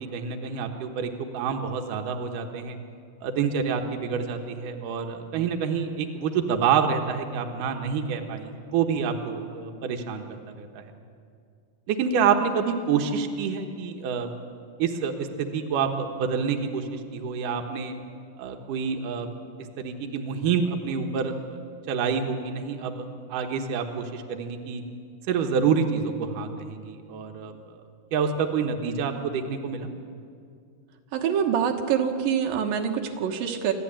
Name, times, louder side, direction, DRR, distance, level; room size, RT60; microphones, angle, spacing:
voice 1, 0.1-2.8 3.2-10.8 11.9-14.3 14.8-17.9 18.4-19.3 19.8-21.6 21.9-23.0 23.3-24.8 25.3-27.6 28.1-29.9, right 6 dB, 75° right, 3 dB, 2.8 m, -27 dB
voice 2, 31.1-33.7, right 8 dB, 90° right, 3 dB, 3.0 m, -25 dB
26.5 x 13.0 x 8.8 m, 2.3 s
omnidirectional pair, 3.9 m